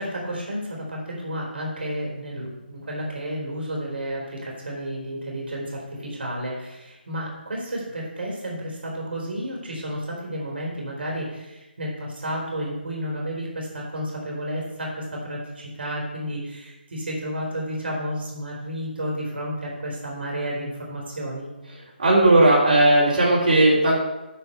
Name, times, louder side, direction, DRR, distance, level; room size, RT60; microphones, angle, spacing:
voice 1, 0.0-21.5, equal, 65° right, -2 dB, 3.7 m, -31 dB
voice 2, 22.0-24.0, right 1 dB, 45° right, -7 dB, 3.7 m, -16 dB
9.2 x 5.5 x 7.0 m, 1.0 s
hypercardioid pair, 170°, 6 cm